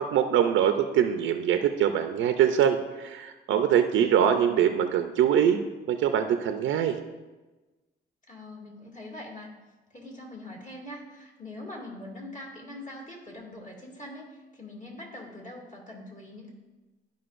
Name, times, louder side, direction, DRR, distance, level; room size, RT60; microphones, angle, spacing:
voice 1, 0.0-5.6 5.9-7.0, right 9 dB, 80° right, 6 dB, 0.6 m, -23 dB
voice 2, 4.2-4.6 8.3-9.5 9.9-16.5, left 1 dB, 40° left, -2 dB, 2.4 m, -43 dB
13.0 x 5.3 x 2.6 m, 1.2 s
cardioid pair, 90°, 20 cm